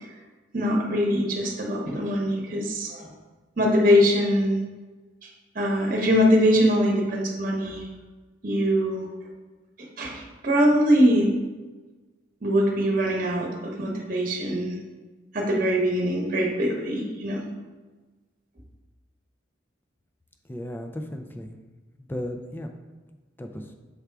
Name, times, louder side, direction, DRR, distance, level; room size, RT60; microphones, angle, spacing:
voice 1, 0.5-3.1 3.6-4.6 5.5-7.9 8.4-9.1 9.8-11.3 12.4-14.7 15.3-17.4, equal, 45° right, 0 dB, 1.0 m, -22 dB
voice 2, 20.5-21.6 22.0-22.7 23.4-23.7, left 1 dB, 10° left, 5 dB, 0.4 m, -35 dB
6.8 x 3.5 x 4.7 m, 1.3 s
head